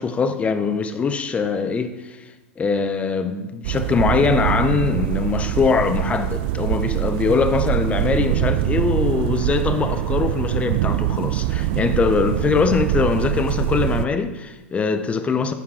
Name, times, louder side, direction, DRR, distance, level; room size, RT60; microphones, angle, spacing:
voice 1, 0.0-1.9 2.6-15.5, left 5 dB, 15° left, 0.6 m, -22 dB
sound 1, 3.6-14.1, right 13 dB, 50° right, 0.4 m, -23 dB
13.0 x 4.8 x 3.6 m
figure-of-eight pair, 100°, 7 cm